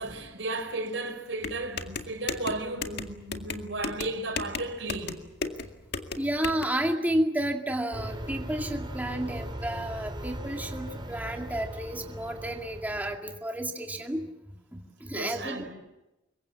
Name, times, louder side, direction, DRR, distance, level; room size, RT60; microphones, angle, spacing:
voice 1, 0.0-5.2 15.1-15.7, right 2 dB, 85° right, 4.9 m, -34 dB
sound 1, 1.4-6.6, left 4 dB, 60° left, 2.0 m, -35 dB
voice 2, 6.2-14.3 14.7-15.6, right 1 dB, 10° right, 2.1 m, -31 dB
sound 2, 7.9-13.2, right 1 dB, 25° right, 3.2 m, -39 dB
26.5 x 22.5 x 7.5 m
head